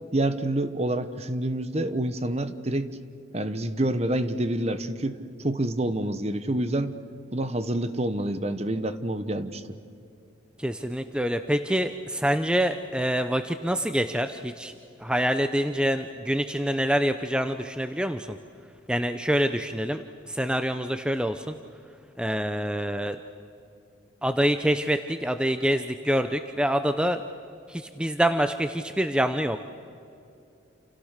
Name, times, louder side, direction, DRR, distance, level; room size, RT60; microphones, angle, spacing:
voice 1, 0.1-3.0 3.3-7.0 7.3-9.6, right 1 dB, 35° right, 11 dB, 1.2 m, -27 dB
voice 2, 10.6-14.7 15.0-18.4 18.9-21.6 22.2-23.2 24.2-27.2 27.7-29.6, equal, 5° right, 8 dB, 0.6 m, -26 dB
29.0 x 29.0 x 6.6 m, 2.6 s
head